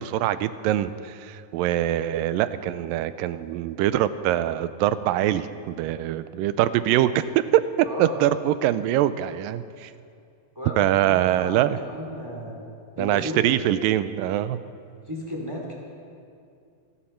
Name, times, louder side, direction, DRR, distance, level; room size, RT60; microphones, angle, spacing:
voice 1, 0.0-7.6 8.0-9.9 10.8-11.8 13.0-14.6, right 12 dB, 90° right, 14 dB, 2.3 m, -23 dB
voice 2, 7.8-8.3 10.5-12.7 12.9-13.7 15.1-15.7, equal, 10° right, -1 dB, 2.0 m, -34 dB
28.0 x 11.5 x 4.4 m, 2.4 s
omnidirectional pair, 3.9 m